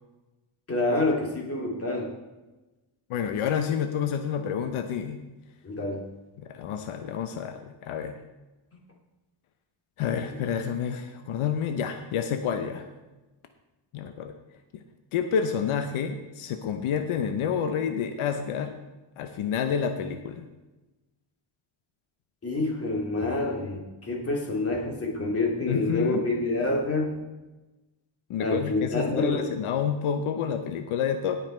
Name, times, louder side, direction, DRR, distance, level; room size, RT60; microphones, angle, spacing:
voice 1, 0.7-2.1 5.6-6.0 22.4-27.2 28.4-29.5, left 2 dB, 30° left, -1 dB, 2.7 m, -27 dB
voice 2, 3.1-5.2 6.4-8.1 10.0-12.9 13.9-14.3 15.1-18.8 19.2-20.5 25.7-26.3 28.3-31.4, left 7 dB, 90° left, 7 dB, 0.9 m, -29 dB
17.0 x 5.8 x 4.4 m, 1.1 s
cardioid pair, 130°, 48 cm